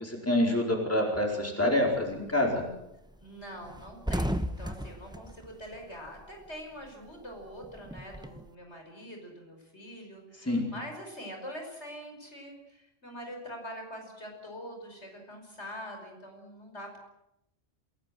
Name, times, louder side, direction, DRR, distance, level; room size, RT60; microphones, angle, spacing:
voice 1, 0.2-2.6 10.4-10.6, left 1 dB, 10° left, 1 dB, 4.6 m, -26 dB
sound 1, 1.9-2.3 2.7-2.8 3.1-3.2 3.5-6.5 6.8-8.5, equal, 5° right, 1.0 m, -35 dB
voice 2, 3.2-17.0, equal, 75° left, 3 dB, 6.0 m, -44 dB
27.5 x 18.0 x 7.7 m, 0.85 s
omnidirectional pair, 1.2 m